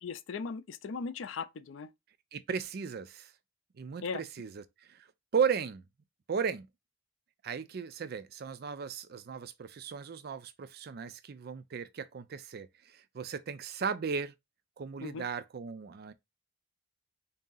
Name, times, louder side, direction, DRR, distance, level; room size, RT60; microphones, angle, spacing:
voice 1, 0.0-1.9 4.0-4.2 15.0-15.2, left 5 dB, 80° left, 0.4 m, -38 dB
voice 2, 2.3-3.3 3.8-4.6 4.9-5.0 5.3-5.8 6.3-6.7 7.4-14.3 14.8-16.1, right 6 dB, 55° right, 0.4 m, -35 dB
3.7 x 2.7 x 3.9 m
head